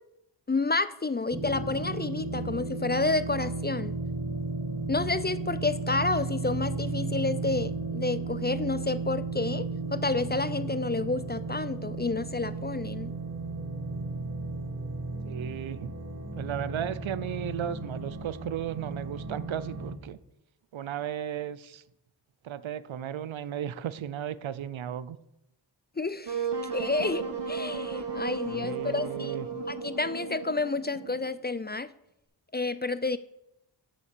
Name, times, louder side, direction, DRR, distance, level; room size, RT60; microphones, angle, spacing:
voice 1, 0.5-3.9 4.9-13.1 26.0-29.4 29.7-31.9 32.5-33.2, left 3 dB, 20° left, 15 dB, 0.4 m, -30 dB
sound 1, 1.3-19.9, right 3 dB, 25° right, 1.7 m, -34 dB
voice 2, 15.2-15.9 16.3-20.2 20.7-21.8 22.4-25.2 28.5-29.5, right 10 dB, 80° right, 17 dB, 0.6 m, -35 dB
Wind instrument woodwind instrument, 26.3-31.4, right 5 dB, 60° right, 2.0 m, -34 dB
7.4 x 7.0 x 6.7 m, 0.85 s
cardioid pair, 40°, 47 cm